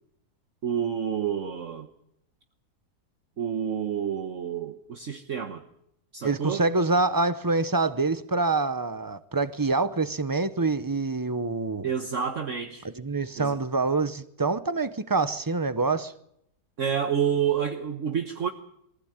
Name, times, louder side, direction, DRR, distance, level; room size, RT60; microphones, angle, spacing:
voice 1, 0.6-1.9 3.4-5.6 6.1-6.6 11.8-12.9 13.4-13.6 16.8-18.5, right 8 dB, 55° right, 1.5 m, -29 dB
voice 2, 6.2-11.9 12.8-16.1, right 3 dB, 20° right, 0.6 m, -26 dB
22.5 x 15.5 x 8.8 m
omnidirectional pair, 1.7 m